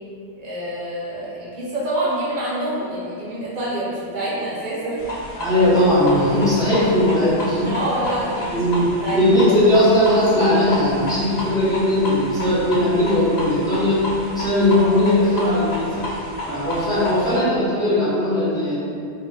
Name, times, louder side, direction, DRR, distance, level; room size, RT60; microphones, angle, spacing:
voice 1, 0.4-5.0 7.6-9.6, right 1 dB, 50° right, -8 dB, 0.8 m, -27 dB
sound 1, 5.0-17.4, left 1 dB, 70° left, 0.8 m, -31 dB
voice 2, 5.4-7.7 8.5-14.1 14.3-16.0 16.4-18.7, left 1 dB, 5° left, -12 dB, 0.5 m, -18 dB
2.1 x 2.1 x 3.1 m, 2.5 s
omnidirectional pair, 1.1 m